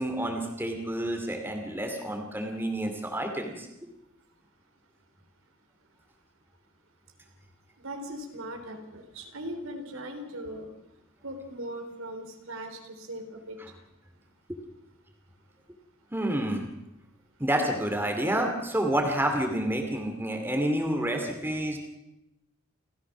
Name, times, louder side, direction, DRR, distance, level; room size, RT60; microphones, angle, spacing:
voice 1, 0.0-3.7 13.6-13.7 16.1-16.7 17.4-21.8, right 1 dB, 10° right, 3 dB, 2.4 m, -29 dB
voice 2, 7.8-10.7 11.2-13.6, right 1 dB, 80° right, 5 dB, 3.8 m, -39 dB
29.0 x 14.5 x 6.1 m, 0.89 s
head